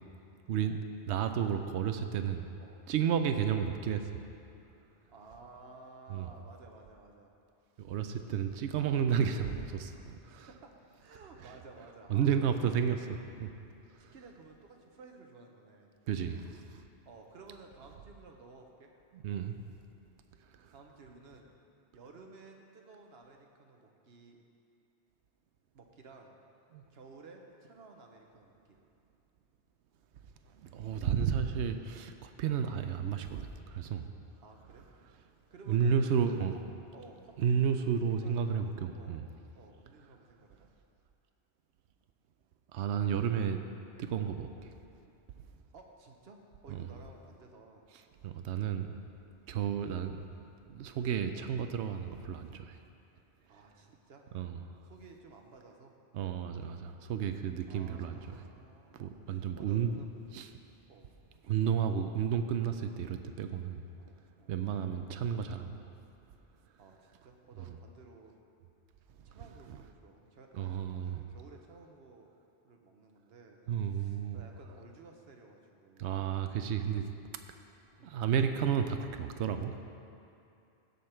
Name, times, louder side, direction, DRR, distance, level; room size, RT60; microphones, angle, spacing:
voice 1, 0.5-0.8 1.1-2.5 2.9-4.1 6.1-6.3 7.8-10.5 11.4-11.5 12.1-13.5 14.0-14.1 16.1-16.8 19.1-19.5 20.6-20.7 26.7-26.8 30.6-34.1 35.7-36.6 37.4-39.3 42.7-43.6 44.0-44.7 46.7-46.9 48.2-49.0 49.5-50.2 50.7-52.8 54.3-54.6 56.1-58.2 58.9-60.0 60.3-60.5 61.5-63.8 64.5-65.8 67.6-67.7 69.3-69.8 70.5-71.2 73.7-74.4 76.0-77.1 78.0-79.8, right 8 dB, 85° right, 7 dB, 0.9 m, -32 dB
voice 2, 5.1-7.3 7.8-8.0 9.3-9.5 10.1-10.2 10.4-12.7 14.1-15.9 17.0-18.9 20.7-21.5 21.9-24.4 25.7-26.3 26.9-28.8 32.6-32.8 34.4-34.9 35.5-36.4 36.9-37.8 38.2-39.2 39.5-40.7 45.7-47.9 49.6-49.9 53.5-54.3 54.8-55.9 57.7-60.1 60.9-61.1 64.0-64.9 66.8-68.3 69.2-72.3 72.6-76.2 78.0-78.2, right 3 dB, 65° right, 2 dB, 1.2 m, -55 dB
16.0 x 5.5 x 4.4 m, 2.7 s
omnidirectional pair, 1.1 m